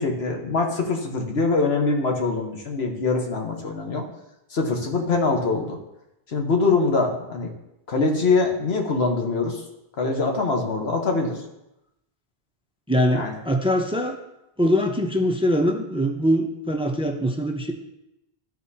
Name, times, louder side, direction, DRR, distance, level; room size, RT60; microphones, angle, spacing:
voice 1, 0.0-4.0 4.5-5.8 6.3-7.5 7.9-9.6 10.0-11.4 13.1-13.4, left 3 dB, 80° left, 2 dB, 1.4 m, -23 dB
voice 2, 12.9-14.2 14.6-17.7, equal, 10° right, 3 dB, 0.4 m, -22 dB
12.5 x 4.2 x 2.8 m, 0.88 s
omnidirectional pair, 1.0 m